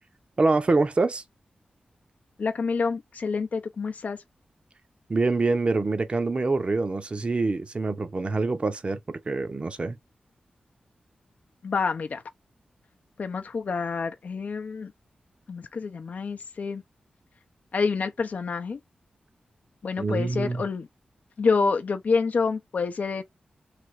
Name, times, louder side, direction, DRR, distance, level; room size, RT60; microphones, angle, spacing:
voice 1, 0.4-1.2 5.1-10.0 20.0-20.6, right 3 dB, 40° right, 0.6 m, -25 dB
voice 2, 2.4-4.2 11.6-12.2 13.2-14.9 15.5-16.8 17.7-18.8 19.8-20.9 21.4-23.2, left 4 dB, 65° left, 0.5 m, -27 dB
3.3 x 2.8 x 2.5 m
cardioid pair, 65°, 3 cm